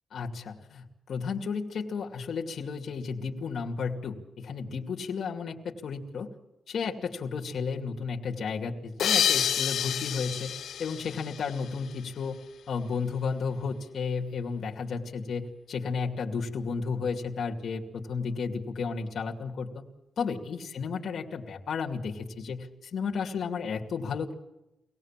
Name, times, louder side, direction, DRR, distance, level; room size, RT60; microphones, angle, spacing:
voice 1, 0.1-6.3 6.7-12.4 12.7-19.8 20.2-24.3, left 5 dB, 55° left, 0 dB, 2.5 m, -33 dB
sound 1, 9.0-12.1, left 9 dB, 80° left, 0.8 m, -29 dB
25.5 x 18.5 x 7.5 m, 0.93 s
wide cardioid pair, 175°, 0 cm